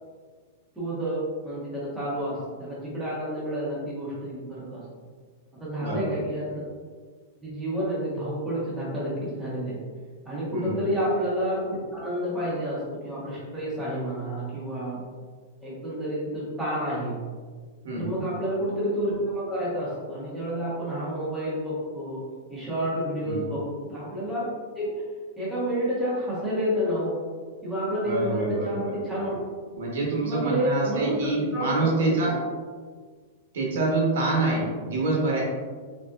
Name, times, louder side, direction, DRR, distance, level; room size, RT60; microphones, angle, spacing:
voice 1, 0.7-4.8 5.5-6.6 7.4-9.8 10.2-15.0 15.6-17.2 17.9-22.2 22.5-23.6 23.9-24.5 24.8-24.9 25.4-27.1 27.6-29.4 30.2-32.4, equal, 5° right, -10 dB, 1.1 m, -29 dB
voice 2, 5.8-6.1 10.5-10.8 17.8-18.2 23.2-23.5 28.0-28.9 29.7-32.4 33.5-35.4, right 2 dB, 65° right, -3 dB, 1.2 m, -26 dB
4.1 x 3.5 x 2.5 m, 1.5 s
supercardioid pair, 175°, 0 cm